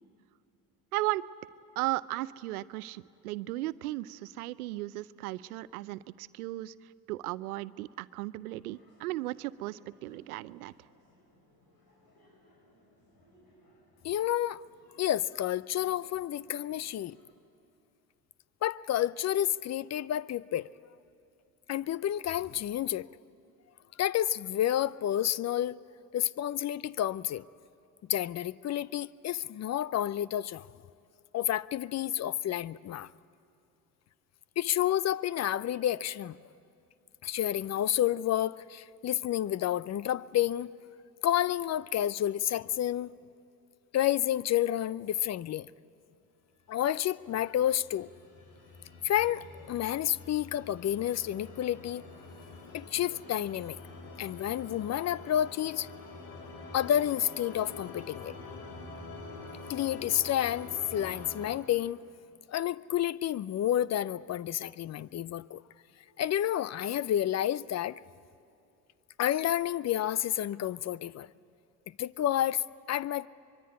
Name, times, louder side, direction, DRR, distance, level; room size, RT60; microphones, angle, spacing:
voice 1, 0.9-1.3 1.8-10.7, right 17 dB, 80° right, 0.7 m, -36 dB
sound 1, 8.6-17.3, left 1 dB, 55° left, 6.5 m, -65 dB
voice 2, 14.0-14.6 15.0-17.2 18.6-20.7 21.7-23.1 24.0-25.8 26.1-27.4 28.1-30.7 31.3-33.1 34.6-36.4 37.2-40.7 41.2-43.1 43.9-45.7 46.7-48.1 49.0-52.0 52.7-53.8 54.2-55.9 56.7-58.4 59.7-62.0 62.5-65.6 66.2-68.0 69.2-71.3 72.0-73.3, left 12 dB, 40° left, 0.6 m, -30 dB
sound 2, 47.2-61.6, left 3 dB, 70° left, 3.8 m, -46 dB
24.0 x 23.0 x 9.6 m
hypercardioid pair, 65°, 43 cm